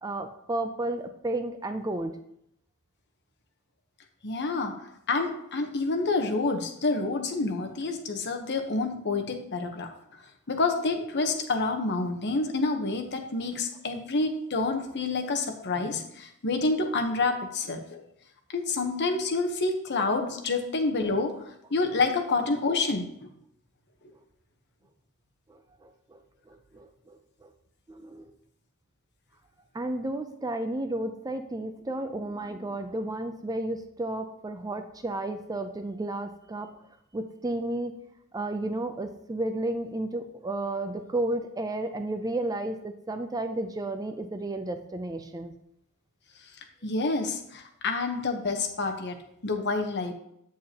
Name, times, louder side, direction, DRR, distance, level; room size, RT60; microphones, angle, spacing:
voice 1, 0.0-2.2 21.3-21.4 25.5-26.2 26.5-27.5 27.9-28.3 29.7-36.7 37.1-37.9 38.3-45.5, right 2 dB, 15° right, 8 dB, 0.5 m, -32 dB
voice 2, 4.2-4.8 5.1-9.9 10.5-18.0 18.5-21.3 21.7-23.3 46.8-49.2 49.4-50.1, left 3 dB, 55° left, 4 dB, 1.0 m, -28 dB
8.4 x 7.6 x 2.9 m, 0.75 s
head